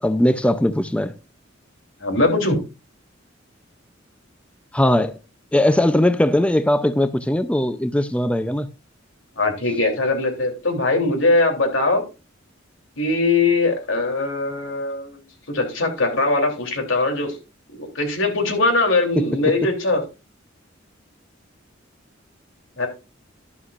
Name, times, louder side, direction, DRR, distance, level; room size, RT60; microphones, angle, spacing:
voice 1, 0.0-1.1 4.7-5.1 5.5-8.7, left 1 dB, 5° left, 0.4 m, -19 dB
voice 2, 2.0-2.6 9.4-12.0 13.0-15.2 15.5-17.4 17.7-20.0 22.8-22.9, left 2 dB, 80° left, 3.1 m, -21 dB
11.5 x 11.0 x 2.4 m
head